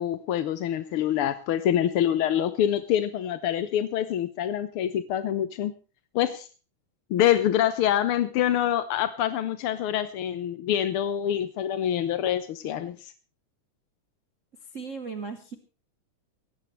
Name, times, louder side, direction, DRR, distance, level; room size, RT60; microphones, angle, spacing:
voice 1, 0.0-5.7 6.1-6.5 7.1-13.1, left 10 dB, 70° left, 12 dB, 1.3 m, -26 dB
voice 2, 14.7-15.6, right 5 dB, 70° right, 6 dB, 0.7 m, -36 dB
18.0 x 16.5 x 3.2 m, 0.33 s
omnidirectional pair, 3.5 m